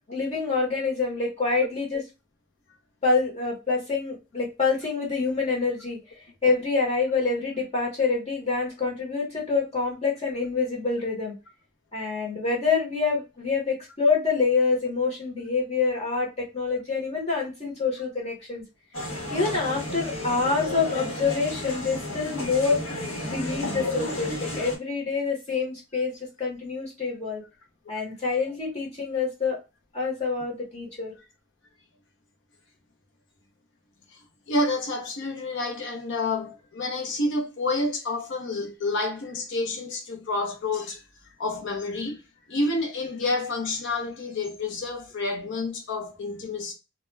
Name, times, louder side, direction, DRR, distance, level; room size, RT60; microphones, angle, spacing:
voice 1, 0.1-2.0 3.0-6.0 6.4-11.3 11.9-18.6 19.3-22.9 23.2-27.4 27.9-29.6 29.9-31.1, left 4 dB, 30° left, 0.9 m, -26 dB
sound 1, 18.9-24.8, left 1 dB, 80° left, 0.9 m, -32 dB
voice 2, 34.5-41.0 41.4-42.2 42.5-46.7, left 2 dB, 60° left, 0.6 m, -29 dB
2.2 x 2.1 x 3.1 m
head